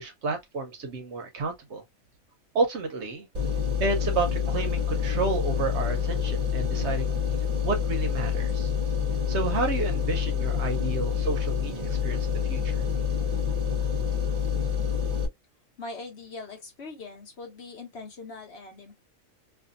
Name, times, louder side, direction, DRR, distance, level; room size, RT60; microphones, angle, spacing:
voice 1, 0.0-1.8 2.5-3.3 3.8-7.2 7.6-8.7 9.3-12.8, right 4 dB, 65° right, 0.9 m, -31 dB
sound 1, 3.3-15.3, left 7 dB, 40° right, 0.6 m, -27 dB
voice 2, 15.8-19.0, left 3 dB, 55° left, 1.1 m, -41 dB
2.6 x 2.5 x 2.4 m
omnidirectional pair, 1.4 m